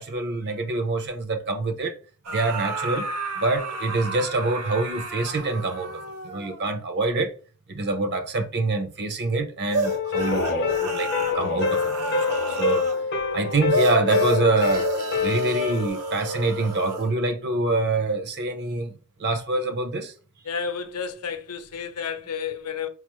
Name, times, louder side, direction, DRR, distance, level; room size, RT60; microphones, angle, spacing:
voice 1, 0.0-1.9 2.3-3.1 3.4-7.3 7.7-12.9 13.3-14.9 15.2-18.9 19.2-20.1, right 2 dB, 50° right, 0.6 m, -26 dB
sound 1, 2.2-6.7 9.7-13.0 13.7-17.1, right 2 dB, 85° right, 0.9 m, -30 dB
sound 2, 9.8-15.9, left 5 dB, 45° left, 0.7 m, -26 dB
voice 2, 20.4-22.9, left 6 dB, 85° left, 0.6 m, -31 dB
4.7 x 2.4 x 2.9 m
head